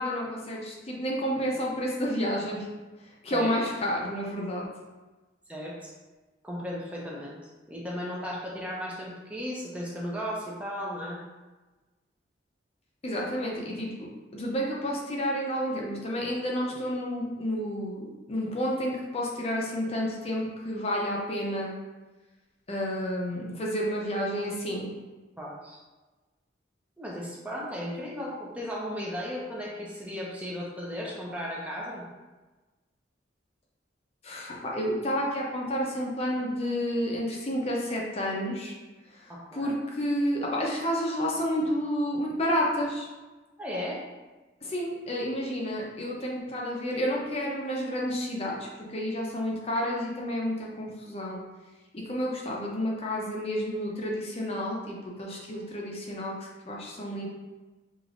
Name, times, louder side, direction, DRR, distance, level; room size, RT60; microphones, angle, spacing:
voice 1, 0.0-2.7 3.2-4.7 13.0-21.7 22.7-24.9 34.2-38.7 39.5-43.1 44.6-51.4 51.9-57.3, equal, 35° left, -2 dB, 0.6 m, -30 dB
voice 2, 5.5-5.9 6.4-11.2 25.4-25.8 27.0-32.0 39.3-39.8 43.6-44.0, equal, 5° right, -4 dB, 0.6 m, -35 dB
4.9 x 2.9 x 2.5 m, 1.2 s
head